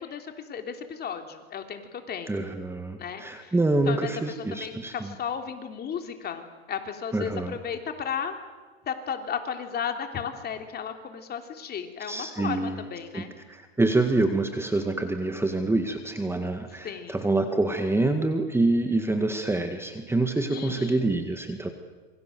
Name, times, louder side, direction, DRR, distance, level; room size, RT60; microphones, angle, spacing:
voice 1, 0.0-2.5 3.0-3.5 3.8-8.4 8.8-13.3 16.8-17.2 20.5-21.2, left 7 dB, 30° left, 6 dB, 3.2 m, -34 dB
voice 2, 2.3-4.9 7.1-7.6 12.1-12.8 13.1-21.7, right 2 dB, 5° right, 6 dB, 1.9 m, -26 dB
27.0 x 24.0 x 7.8 m, 1.3 s
hypercardioid pair, 115°, 33 cm